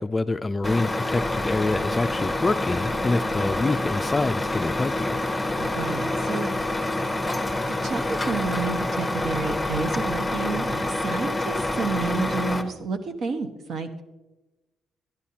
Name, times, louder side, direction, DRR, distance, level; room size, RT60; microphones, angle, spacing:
voice 1, 0.0-5.2, left 3 dB, 25° left, 13 dB, 0.3 m, -26 dB
Truck, 0.6-12.6, left 2 dB, 10° left, 0.9 m, -27 dB
voice 2, 5.6-6.5 7.8-14.0, right 4 dB, 65° right, 7 dB, 1.0 m, -30 dB
12.0 x 10.5 x 2.8 m, 1.1 s
cardioid pair, 90°, 0 cm